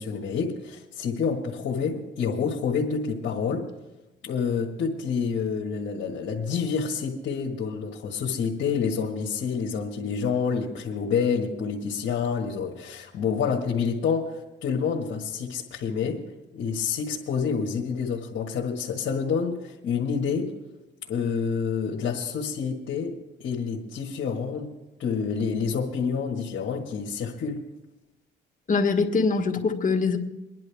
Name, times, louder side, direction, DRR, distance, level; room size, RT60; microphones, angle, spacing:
voice 1, 0.0-3.7 4.2-16.2 16.5-20.5 21.1-24.7 25.0-27.6, left 6 dB, 70° left, -2 dB, 1.6 m, -28 dB
voice 2, 28.7-30.2, left 4 dB, 40° left, 3 dB, 1.6 m, -23 dB
24.5 x 10.5 x 3.5 m, 1.0 s
cardioid pair, 90°, 20 cm